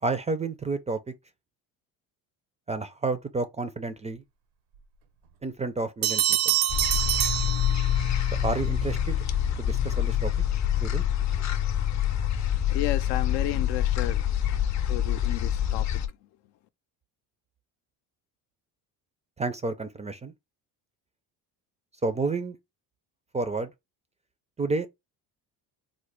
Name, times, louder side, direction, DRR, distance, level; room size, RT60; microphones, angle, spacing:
voice 1, 0.0-1.0 2.7-4.2 5.4-6.6 8.4-9.2 9.6-10.3 10.8-11.0 19.4-20.3 22.0-22.6 23.3-23.7 24.6-24.9, right 3 dB, 15° right, 0.4 m, -30 dB
Bell, 6.0-8.3, right 12 dB, 75° right, 0.7 m, -26 dB
sound 1, 6.7-16.1, left 10 dB, 40° left, 0.6 m, -26 dB
voice 2, 12.7-14.2 14.9-15.8, left 13 dB, 85° left, 0.6 m, -32 dB
3.7 x 2.0 x 3.1 m
cardioid pair, 90°, 42 cm